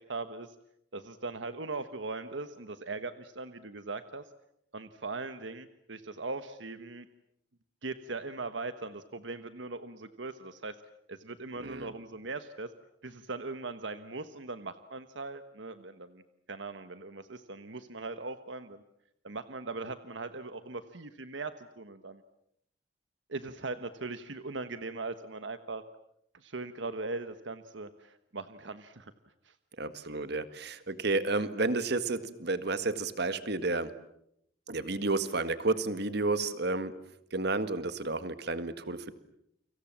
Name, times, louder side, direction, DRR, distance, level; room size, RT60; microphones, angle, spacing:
voice 1, 0.1-0.5 0.9-4.2 4.7-7.1 7.8-10.8 11.1-12.7 13.0-16.2 16.5-18.8 19.2-22.2 23.3-25.8 26.3-29.1 29.4-29.5, right 3 dB, 80° right, 10 dB, 1.3 m, -40 dB
voice 2, 11.6-11.9 29.8-33.9 34.7-36.9 37.3-39.1, right 3 dB, 60° right, 12 dB, 1.9 m, -31 dB
30.0 x 25.5 x 7.5 m, 0.76 s
head